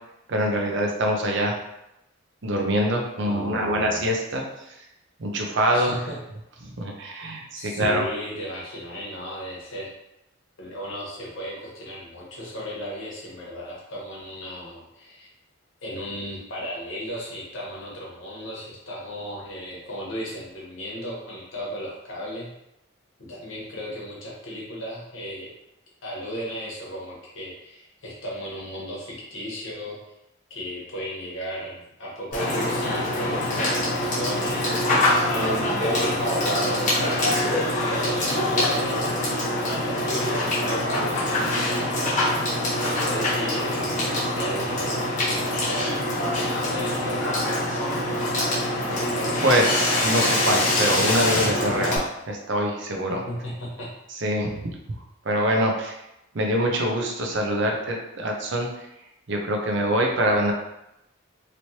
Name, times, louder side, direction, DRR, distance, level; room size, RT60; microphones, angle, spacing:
voice 1, 0.3-1.6 2.4-4.4 5.2-5.9 6.6-8.1 49.4-53.2 54.2-54.6 55.2-56.0 56.3-58.7 59.3-60.5, equal, 60° right, 1 dB, 0.6 m, -24 dB
voice 2, 3.2-4.0 5.7-6.2 7.5-9.9 10.6-15.3 15.8-22.5 23.2-25.5 26.0-30.0 30.5-34.6 35.3-37.4 37.9-39.2 39.5-41.4 41.8-42.2 42.8-43.9 44.3-46.0 46.3-47.4 53.1-53.9, equal, 65° left, -5 dB, 1.1 m, -35 dB
Water / Water tap faucet / Sink (filling or washing), 32.3-52.0, left 1 dB, 35° left, 1.0 m, -24 dB
3.0 x 3.0 x 2.8 m, 0.86 s
head